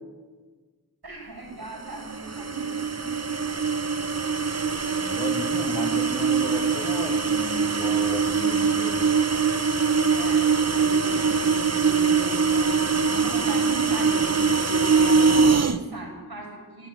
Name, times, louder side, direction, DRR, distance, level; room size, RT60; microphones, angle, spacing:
voice 1, 1.0-3.5 10.0-16.9, right 3 dB, 75° right, -1 dB, 8.0 m, -39 dB
sound 1, 1.9-15.8, right 5 dB, 40° right, 1.1 m, -23 dB
voice 2, 5.0-9.2, left 1 dB, 20° left, 1 dB, 6.2 m, -34 dB
24.5 x 16.5 x 9.4 m, 1.5 s
wide cardioid pair, 55°, 38 cm